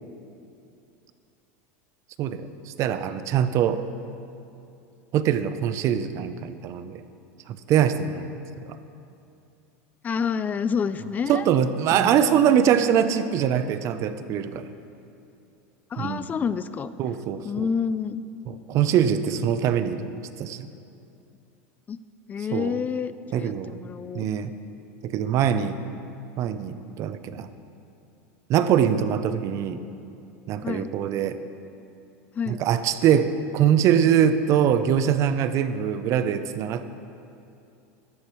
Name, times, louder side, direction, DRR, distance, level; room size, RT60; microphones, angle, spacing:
voice 1, 2.2-3.8 5.1-7.0 7.7-8.3 11.3-14.7 16.0-16.3 17.0-17.7 18.5-20.1 20.4-20.7 22.5-22.8 23.3-23.8 24.1-24.5 25.0-25.8 26.4-27.5 28.5-29.8 30.5-31.4 32.5-36.9, right 9 dB, 45° right, 11 dB, 0.6 m, -23 dB
voice 2, 10.0-11.5 11.9-12.4 15.9-16.9 17.4-18.2 21.9-22.0 22.3-24.3 30.6-30.9 32.4-32.6, left 6 dB, 25° left, 14 dB, 0.4 m, -28 dB
15.0 x 11.5 x 3.1 m, 2.6 s
supercardioid pair, 125°, 7 cm